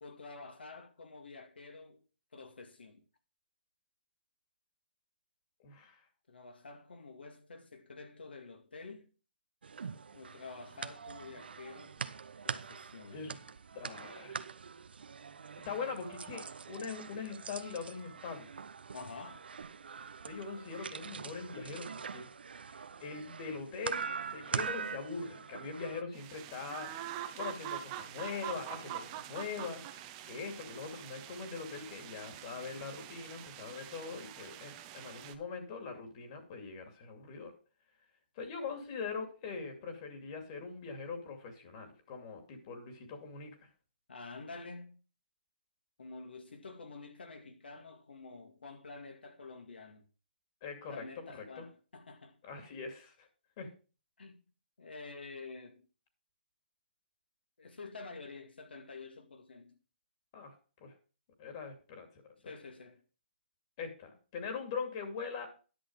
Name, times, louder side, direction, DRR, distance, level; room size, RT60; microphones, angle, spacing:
voice 1, 0.0-2.1 2.3-3.0 6.3-9.1 10.1-12.0 12.4-13.3 18.9-19.5 44.1-45.0 46.0-50.0 50.9-52.4 54.2-54.4 54.8-55.9 57.6-59.8 62.4-63.0, left 3 dB, 80° left, 2.1 m, -49 dB
voice 2, 5.6-6.0 13.1-13.4 13.7-14.5 15.6-18.5 20.3-22.3 22.6-26.9 27.3-29.8 30.2-37.5 38.4-43.5 50.6-51.7 52.4-53.3 53.6-53.7 60.3-60.5 60.8-60.9 61.4-62.5 63.8-65.5, left 5 dB, 35° left, 2.4 m, -42 dB
sound 1, 9.6-26.0, right 6 dB, 75° right, 0.7 m, -43 dB
sound 2, 26.1-35.4, right 11 dB, 25° right, 0.8 m, -45 dB
10.5 x 6.5 x 4.8 m
hypercardioid pair, 150°, 5 cm